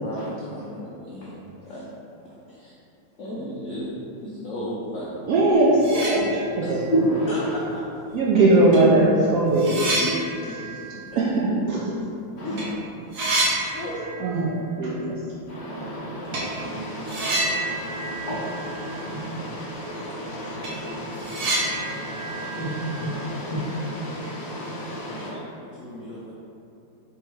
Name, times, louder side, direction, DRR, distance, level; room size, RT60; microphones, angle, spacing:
voice 1, 0.0-1.9 2.5-2.7 3.2-3.9 4.2-5.2 6.6-6.8 7.3-7.8 9.9-10.6 11.1-11.2 12.4-12.7 13.0-14.4 25.0-26.3, equal, 85° left, -7 dB, 0.6 m, -35 dB
voice 2, 5.3-6.4 6.7-6.8 8.1-9.8 11.2-11.3 11.7-11.9 13.6-13.7 14.2-15.2, right 2 dB, 80° right, -5 dB, 0.8 m, -19 dB
sound 1, 5.4-5.5 5.7-6.8 7.2-7.3 8.2-8.3 8.7-12.2 12.4-12.7 12.9-14.5 14.7-14.8 16.3-16.5 17.1-19.2 19.5-19.6 20.0-20.1 20.4-23.6, right 2 dB, 60° right, 1.0 m, -29 dB
voice 3, 6.9-7.3 12.4-12.7 15.5-25.3, equal, 45° left, -7 dB, 0.9 m, -31 dB
3.5 x 3.1 x 4.5 m, 2.7 s
omnidirectional pair, 2.1 m